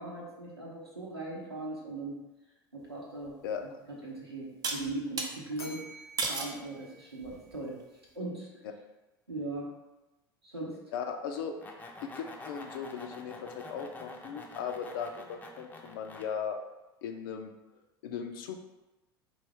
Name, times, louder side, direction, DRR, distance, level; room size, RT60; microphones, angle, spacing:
voice 1, 0.0-2.2 2.7-3.3 3.9-5.8 6.2-7.7 8.1-8.5 9.3-9.7 10.4-10.8, right 2 dB, 90° right, -6 dB, 0.9 m, -39 dB
sound 1, 3.3-3.4 4.6-5.3 6.2-6.6 7.2-7.6, right 3 dB, 30° right, 0.7 m, -33 dB
Bell, 5.5-7.8, equal, 80° left, 0.9 m, -50 dB
voice 2, 10.9-11.6 12.0-16.6 17.0-17.5 18.0-18.6, left 7 dB, 60° left, 5 dB, 0.5 m, -37 dB
sound 2, 11.3-16.3, left 2 dB, 10° left, 0.6 m, -47 dB
4.5 x 2.5 x 3.5 m, 1.0 s
figure-of-eight pair, 75°, 13 cm